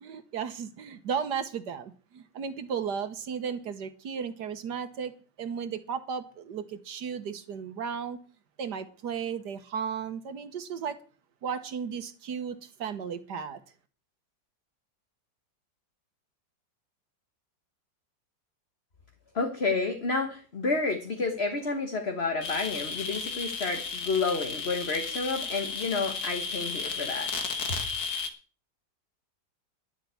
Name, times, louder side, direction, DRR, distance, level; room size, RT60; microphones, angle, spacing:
voice 1, 0.0-8.2 8.6-11.0 11.4-13.6, right 7 dB, 65° right, 1.7 m, -35 dB
voice 2, 19.3-27.3 27.7-27.8, left 3 dB, 35° left, 1.7 m, -30 dB
sound 1, 22.4-28.3, left 5 dB, 60° left, 2.1 m, -34 dB
11.5 x 7.5 x 8.4 m
omnidirectional pair, 2.0 m